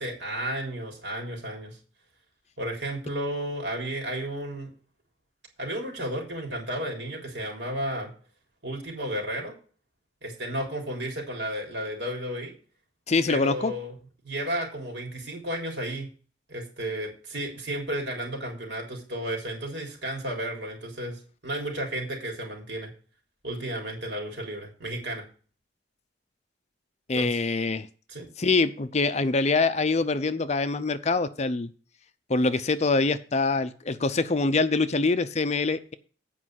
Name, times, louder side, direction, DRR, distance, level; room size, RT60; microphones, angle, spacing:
voice 1, 0.0-1.8 2.6-4.7 5.6-8.1 8.6-9.5 10.2-12.5 13.3-13.9 14.2-16.1 16.5-22.9 23.4-25.3 27.1-27.3 28.1-28.3, right 1 dB, 75° right, 1 dB, 3.7 m, -33 dB
voice 2, 13.1-13.7 27.1-27.9 28.4-31.7 32.3-35.9, left 3 dB, 35° left, 12 dB, 0.6 m, -24 dB
8.7 x 5.3 x 7.6 m, 0.39 s
head